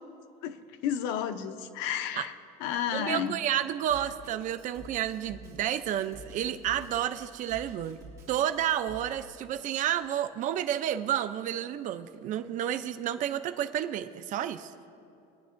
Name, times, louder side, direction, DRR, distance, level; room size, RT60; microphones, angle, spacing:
voice 1, 0.4-2.3 2.6-3.3, left 9 dB, 80° left, 10 dB, 0.7 m, -32 dB
voice 2, 2.9-8.0 8.3-14.7, right 11 dB, 45° right, 10 dB, 0.5 m, -30 dB
Drum kit, 3.9-9.3, equal, 15° right, 2.6 m, -49 dB
22.5 x 9.3 x 2.5 m, 2.7 s
cardioid pair, 155°, 19 cm